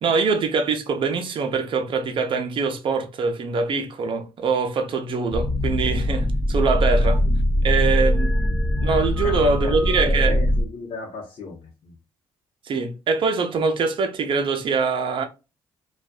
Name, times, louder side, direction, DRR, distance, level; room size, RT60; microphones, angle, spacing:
voice 1, 0.0-7.2 7.6-8.3 8.8-10.4 12.6-15.2, right 4 dB, 55° right, 0.7 m, -23 dB
sound 1, 5.3-10.6, left 1 dB, 5° left, 0.6 m, -21 dB
voice 2, 9.2-9.8 10.0-12.0, left 3 dB, 60° left, 0.9 m, -36 dB
2.6 x 2.4 x 2.2 m
supercardioid pair, 65°, 10 cm